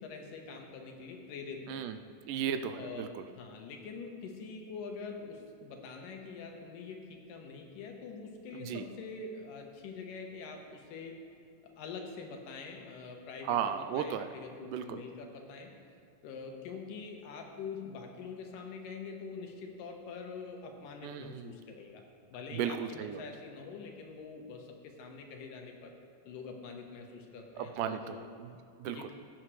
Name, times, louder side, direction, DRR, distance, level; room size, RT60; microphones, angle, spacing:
voice 1, 0.0-1.8 2.8-11.2 11.6-15.7 16.2-22.0 22.3-25.9 26.3-28.3 28.8-29.1, left 4 dB, 80° left, 2 dB, 2.7 m, -45 dB
voice 2, 2.3-3.3 8.5-8.9 13.4-14.3 14.6-15.0 21.0-21.5 22.5-23.2 27.6-29.1, right 8 dB, 80° right, 9 dB, 2.0 m, -35 dB
16.0 x 9.0 x 3.2 m, 2.6 s
omnidirectional pair, 3.8 m